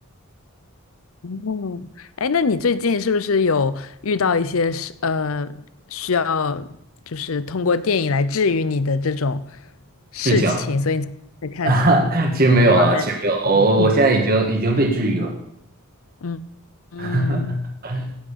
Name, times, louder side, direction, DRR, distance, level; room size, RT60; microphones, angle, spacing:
voice 1, 1.2-5.6 5.9-6.7 7.1-9.4 10.1-11.1 11.4-11.8 12.7-13.0 13.5-13.9 16.2-16.4 16.9-17.6, left 4 dB, 70° left, 0.6 m, -23 dB
voice 2, 10.2-10.6 11.6-15.3 17.0-18.1, right 2 dB, 40° right, 1.6 m, -18 dB
16.0 x 6.2 x 6.8 m
head